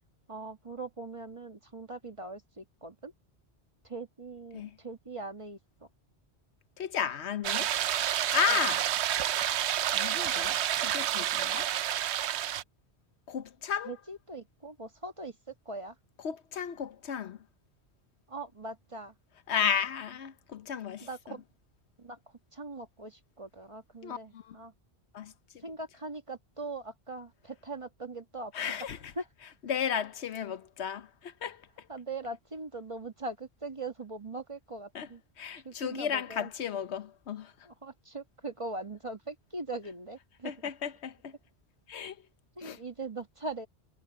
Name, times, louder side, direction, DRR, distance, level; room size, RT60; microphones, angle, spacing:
voice 1, 0.3-3.1 3.8-5.6 8.5-8.7 13.8-15.9 18.3-19.1 21.0-21.4 22.0-22.2 22.5-24.7 25.6-28.7 29.1-29.3 31.9-35.2 35.6-36.5 37.6-40.7 42.6-43.7, right 2 dB, 30° right, 1.5 m, -41 dB
voice 2, 6.8-7.7 8.3-8.9 9.9-11.7 13.3-13.9 16.2-17.4 19.5-21.4 24.0-24.5 25.1-25.3 28.5-29.0 29.7-31.6 34.9-35.1 35.4-37.5 40.4-41.3 41.9-42.2 42.6-42.8, left 8 dB, 80° left, 1.1 m, -33 dB
sound 1, 7.4-12.6, right 11 dB, 80° right, 0.9 m, -29 dB
omnidirectional pair, 1.1 m